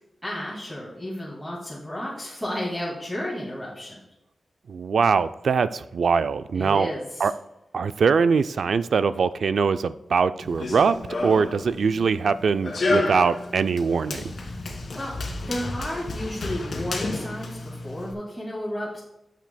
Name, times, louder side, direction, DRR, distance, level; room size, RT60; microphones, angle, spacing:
voice 1, 0.2-4.0 6.5-7.3 14.5-14.6 14.9-15.1 15.4-19.0, left 1 dB, ahead, -7 dB, 2.1 m, -32 dB
voice 2, 4.7-6.9 7.2-7.3 7.7-11.0 11.2-14.3, right 5 dB, 75° right, 12 dB, 0.3 m, -22 dB
Run, 10.4-18.1, left 2 dB, 60° left, 1.7 m, -31 dB
12.5 x 7.4 x 2.2 m, 0.88 s
wide cardioid pair, 130°, 0 cm